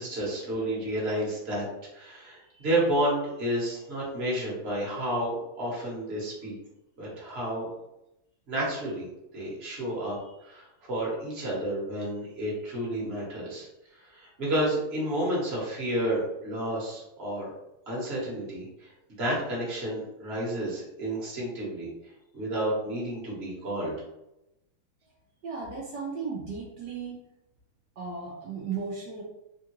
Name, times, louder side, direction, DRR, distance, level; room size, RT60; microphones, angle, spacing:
voice 1, 0.0-1.7 1.9-6.5 7.0-7.7 8.5-9.1 9.3-13.7 13.9-17.5 17.9-18.9 19.2-21.9 22.3-23.9, right 1 dB, 40° right, -5 dB, 1.1 m, -31 dB
voice 2, 25.4-27.2 28.0-29.2, right 5 dB, 70° right, -3 dB, 1.0 m, -35 dB
3.6 x 2.3 x 2.9 m, 0.88 s
omnidirectional pair, 2.3 m